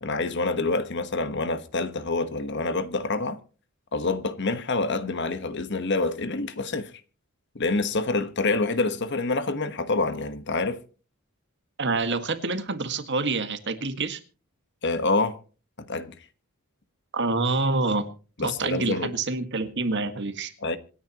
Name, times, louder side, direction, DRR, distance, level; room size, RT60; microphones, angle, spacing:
voice 1, 0.0-3.4 3.9-6.9 7.5-10.8 14.8-15.4 15.8-16.1 18.4-19.1 20.6-20.8, left 3 dB, 55° left, 1.3 m, -27 dB
voice 2, 11.8-14.2 17.1-18.1 18.4-20.5, right 3 dB, 55° right, 1.8 m, -27 dB
26.5 x 10.0 x 3.0 m
head